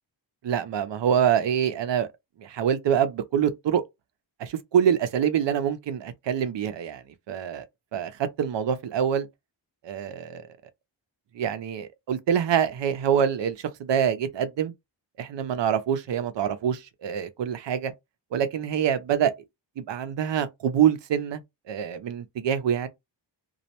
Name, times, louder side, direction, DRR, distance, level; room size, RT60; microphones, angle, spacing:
voice 1, 0.4-2.1 2.4-3.8 4.4-7.7 7.9-9.3 9.8-10.5 11.3-13.5 13.8-14.7 15.2-17.9 18.3-19.3 19.8-21.4 21.7-22.9, right 8 dB, 70° right, 0.6 m, -25 dB
2.3 x 2.1 x 2.7 m
wide cardioid pair, 160°, 45 cm